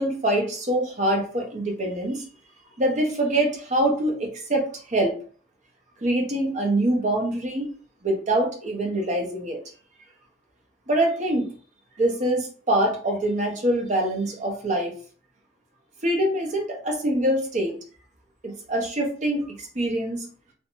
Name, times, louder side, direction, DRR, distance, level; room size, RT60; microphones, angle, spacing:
voice 1, 0.0-2.2 2.8-5.1 6.0-7.7 8.0-9.6 10.9-11.5 12.0-14.9 16.0-17.7 18.4-20.3, right 1 dB, 40° right, 0 dB, 0.7 m, -24 dB
2.5 x 2.1 x 2.9 m, 0.43 s
head